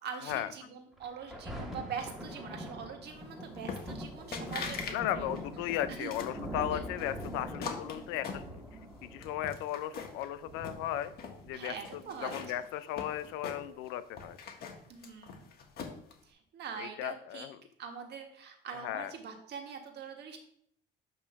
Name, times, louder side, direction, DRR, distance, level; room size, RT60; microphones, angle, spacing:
voice 1, 0.0-4.8 5.1-5.4 6.0-6.1 6.7-6.8 11.5-12.6 14.9-15.4 16.2-17.5 17.8-20.4, right 6 dB, 60° right, 4 dB, 1.5 m, -43 dB
Thunder, 1.0-12.0 12.6-12.7, equal, ahead, 1.6 m, -43 dB
sound 1, 3.7-4.1 4.3-5.0 5.3-6.4 7.0-8.9 9.2-10.3 10.6-11.4 11.8-13.9 14.2-16.1, left 5 dB, 50° left, 1.4 m, -42 dB
voice 2, 4.9-8.6 9.0-11.1 11.4-14.4 16.8-17.6 18.8-19.1, left 12 dB, 85° left, 13 dB, 0.6 m, -36 dB
8.5 x 3.1 x 5.7 m, 0.68 s
cardioid pair, 110°, 20 cm